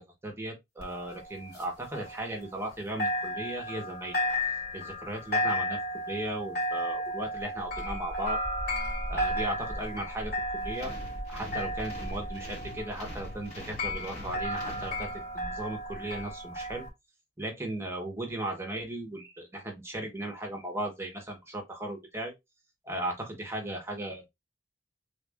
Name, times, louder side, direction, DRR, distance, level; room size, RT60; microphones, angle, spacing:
voice 1, 0.0-4.2 4.7-5.8 6.1-8.4 9.1-10.9 11.3-16.8 17.4-22.3 22.8-24.3, right 1 dB, 15° right, 1.0 m, -36 dB
sound 1, 0.8-2.7 3.0-16.9, equal, 55° left, 2.1 m, -34 dB
sound 2, 10.7-15.5, left 1 dB, 40° left, 1.5 m, -43 dB
3.5 x 2.5 x 3.4 m
head